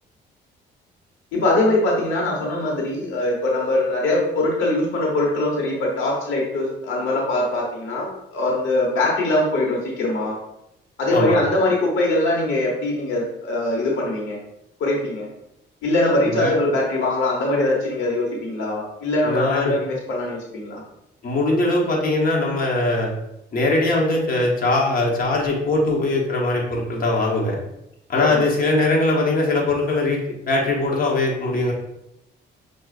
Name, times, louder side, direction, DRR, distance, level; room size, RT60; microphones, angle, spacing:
voice 1, 1.3-10.4 11.0-14.4 14.8-15.3 15.8-20.8 28.1-28.4, left 2 dB, 85° left, -2 dB, 1.0 m, -22 dB
voice 2, 19.2-19.8 21.2-23.1 23.5-27.6 28.1-30.2 30.5-31.7, left 2 dB, 45° left, -2 dB, 1.1 m, -21 dB
6.1 x 2.3 x 2.5 m, 0.83 s
cardioid pair, 90°, 20 cm